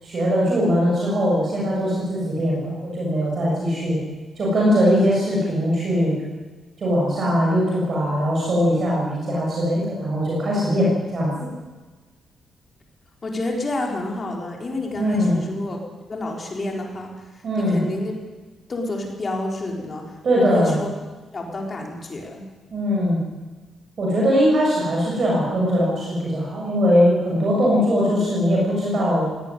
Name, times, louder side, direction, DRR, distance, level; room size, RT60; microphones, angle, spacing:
voice 1, 0.0-4.0 4.4-6.1 6.8-11.5 15.0-15.4 17.4-17.8 20.2-20.8 22.7-23.2 24.0-29.3, equal, 45° right, -4 dB, 7.6 m, -21 dB
voice 2, 13.2-15.8 16.1-17.1 17.6-18.1 18.7-20.9 21.3-22.4, left 2 dB, 30° left, 1 dB, 4.1 m, -29 dB
18.5 x 18.0 x 10.0 m, 1.3 s
wide cardioid pair, 155°, 0 cm